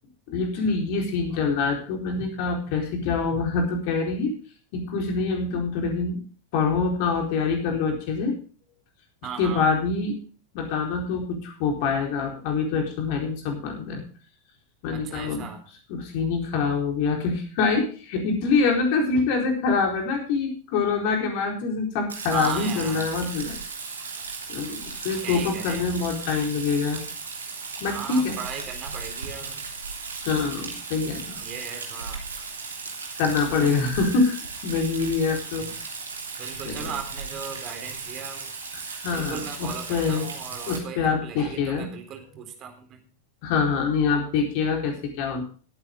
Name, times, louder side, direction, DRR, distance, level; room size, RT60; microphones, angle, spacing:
voice 1, 0.3-4.3 4.7-6.2 6.5-8.4 9.4-10.2 10.5-14.0 14.8-15.5 15.9-23.5 24.5-27.0 27.8-28.4 30.2-31.4 33.2-35.7 36.6-36.9 38.7-40.3 40.7-41.9 43.4-45.4, left 4 dB, 45° left, 2 dB, 4.3 m, -25 dB
voice 2, 9.2-9.7 14.9-15.6 22.3-23.1 25.2-25.9 27.9-29.6 31.4-32.2 35.6-35.7 36.4-38.5 38.9-43.0, right 7 dB, 35° right, 5 dB, 3.8 m, -37 dB
Rain, 22.1-40.8, right 4 dB, 70° right, 3.2 m, -36 dB
20.5 x 9.0 x 3.7 m, 0.40 s
figure-of-eight pair, 90°, 0 cm